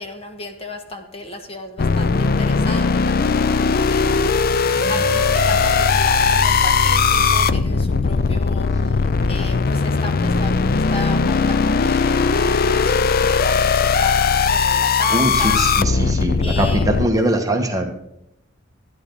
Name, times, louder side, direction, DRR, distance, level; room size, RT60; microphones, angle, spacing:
voice 1, 0.0-4.6 4.9-8.7 9.3-15.6 16.4-17.0, left 2 dB, 30° left, 5 dB, 1.4 m, -34 dB
sound 1, 1.8-17.1, left 5 dB, 50° left, 0.5 m, -18 dB
Bowed string instrument, 4.6-9.9, right 2 dB, 45° right, 2.1 m, -30 dB
voice 2, 15.1-17.9, right 1 dB, 20° right, 3 dB, 1.5 m, -21 dB
14.0 x 10.5 x 4.0 m, 0.79 s
head